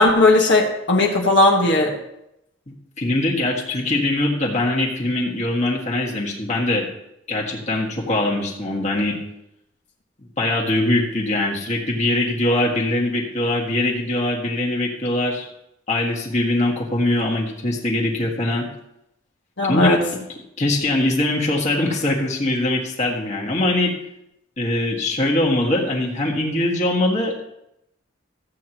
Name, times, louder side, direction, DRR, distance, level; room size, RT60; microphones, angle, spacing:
voice 1, 0.0-1.9 19.6-20.0, left 2 dB, 60° left, -1 dB, 1.5 m, -16 dB
voice 2, 2.7-6.9 7.3-9.2 10.4-15.5 15.9-18.7 19.7-20.0 20.6-23.9 24.6-27.3, left 1 dB, 35° left, -3 dB, 1.8 m, -22 dB
14.5 x 8.5 x 3.0 m, 0.82 s
head